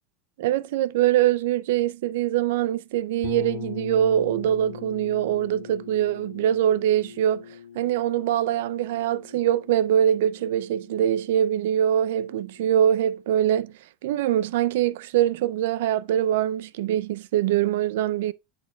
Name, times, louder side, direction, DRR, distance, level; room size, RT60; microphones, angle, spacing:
voice 1, 0.4-7.4 7.7-13.7 14.0-18.3, right 11 dB, 90° right, 0.4 m, -23 dB
sound 1, 3.2-12.9, left 8 dB, 45° left, 2.3 m, -42 dB
8.3 x 6.3 x 2.3 m
supercardioid pair, 180°, 0 cm